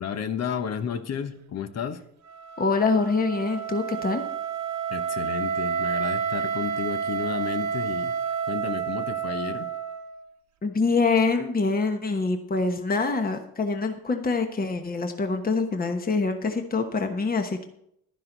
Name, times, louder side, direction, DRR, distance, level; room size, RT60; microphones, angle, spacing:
voice 1, 0.0-2.0 4.9-8.1 8.5-9.7, left 7 dB, 55° left, 10 dB, 1.1 m, -32 dB
Wind instrument woodwind instrument, 2.2-10.3, right 7 dB, 65° right, 1.1 m, -30 dB
voice 2, 2.6-4.2 10.6-17.7, left 4 dB, 30° left, 6 dB, 1.2 m, -25 dB
11.5 x 10.5 x 4.0 m, 0.73 s
cardioid pair, 90°, 30 cm